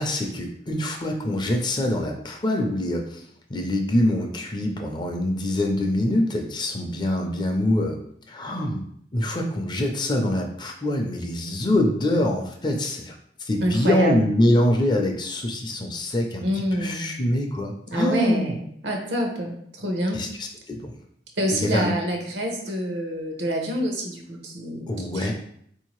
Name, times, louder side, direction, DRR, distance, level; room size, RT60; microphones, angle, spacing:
voice 1, 0.0-3.2 3.5-8.0 8.3-8.8 9.1-13.1 13.5-16.4 16.7-18.5 20.1-20.9 21.5-21.9 24.9-25.3, left 1 dB, 25° left, 2 dB, 0.5 m, -24 dB
voice 2, 13.6-14.2 16.4-17.1 17.9-18.6 18.8-20.2 21.4-25.3, equal, 75° right, 2 dB, 0.8 m, -27 dB
4.0 x 2.7 x 3.0 m, 0.67 s
head